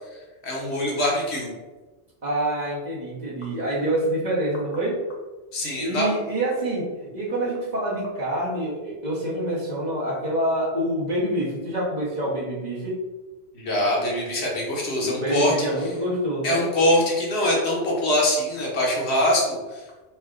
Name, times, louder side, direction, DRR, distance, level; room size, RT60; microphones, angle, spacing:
voice 1, 0.4-1.5 5.5-6.1 13.5-15.9 16.4-19.8, left 1 dB, 90° left, -3 dB, 1.3 m, -23 dB
voice 2, 2.2-5.0 5.6-13.0 15.0-16.7, right 1 dB, 45° right, -5 dB, 1.0 m, -27 dB
4.4 x 2.1 x 3.7 m, 1.2 s
omnidirectional pair, 1.1 m